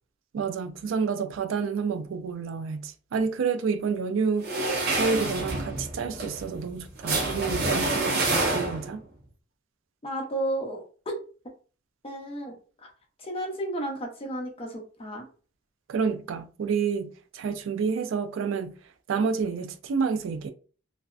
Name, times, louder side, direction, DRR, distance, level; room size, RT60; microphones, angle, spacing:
voice 1, 0.3-4.5 4.9-9.0 15.9-18.7 19.1-20.5, right 5 dB, 85° right, 0.4 m, -29 dB
sound 1, 4.4-9.0, right 2 dB, 55° right, 0.7 m, -27 dB
voice 2, 10.0-11.2 12.0-12.6 12.8-12.9 13.2-15.2, right 1 dB, 30° left, 0.6 m, -33 dB
2.6 x 2.1 x 2.3 m
head